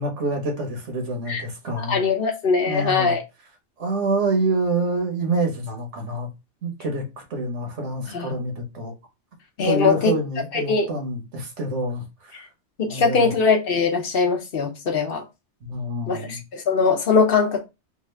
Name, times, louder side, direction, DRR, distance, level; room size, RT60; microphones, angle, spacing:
voice 1, 0.0-2.0 2.7-3.2 3.8-6.3 6.6-7.0 7.3-8.9 9.6-12.5 12.9-13.3 15.6-16.4, right 2 dB, 90° right, 1.4 m, -27 dB
voice 2, 1.8-3.2 8.1-8.3 9.6-10.1 10.5-10.9 12.8-15.2 16.1-17.6, left 5 dB, 55° left, 0.9 m, -21 dB
3.5 x 2.4 x 3.2 m
omnidirectional pair, 1.2 m